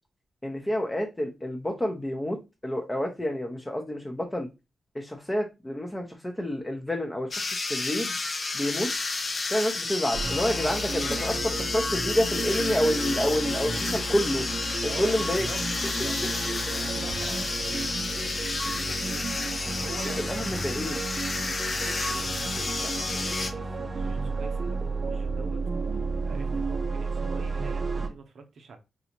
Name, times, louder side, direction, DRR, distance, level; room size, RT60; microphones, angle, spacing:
voice 1, 0.4-4.5 4.9-8.1 8.5-8.9 9.5-14.5 14.8-15.5 20.3-21.0, equal, 15° left, 0.7 m, -29 dB
sound 1, 7.3-23.5, left 3 dB, 50° left, 0.5 m, -31 dB
sound 2, 10.1-28.1, right 3 dB, 45° right, 0.6 m, -32 dB
voice 2, 14.9-18.4 18.6-20.9 21.4-25.6 26.3-28.8, right 4 dB, 75° right, 0.7 m, -44 dB
4.0 x 2.3 x 2.9 m
cardioid pair, 55°, 0 cm